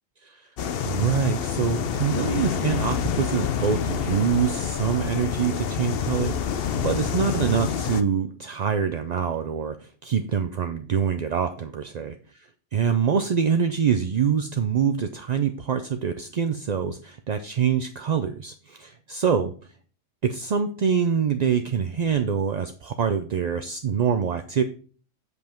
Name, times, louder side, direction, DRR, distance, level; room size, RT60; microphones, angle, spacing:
sound 1, 0.6-8.0, left 7 dB, 60° left, 0.8 m, -27 dB
voice 1, 0.8-12.1 12.7-19.5 20.2-24.6, right 7 dB, 50° right, 7 dB, 0.5 m, -25 dB
8.0 x 5.3 x 4.4 m, 0.42 s
omnidirectional pair, 1.2 m